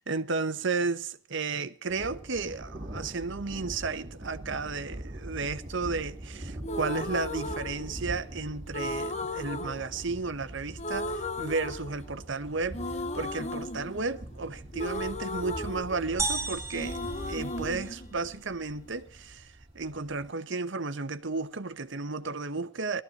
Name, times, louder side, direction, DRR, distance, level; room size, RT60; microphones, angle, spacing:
voice 1, 0.0-12.8 13.1-17.0 17.3-19.5 19.7-23.0, right 4 dB, 65° right, 1.0 m, -33 dB
Thunder, 1.9-20.3, right 1 dB, 30° right, 3.2 m, -43 dB
sound 1, 6.6-8.3 8.7-10.5 10.8-12.4 12.7-16.4 16.7-18.8, left 1 dB, 35° left, 1.1 m, -36 dB
sound 2, 16.2-18.1, right 3 dB, 15° right, 1.9 m, -34 dB
19.0 x 13.5 x 4.2 m
head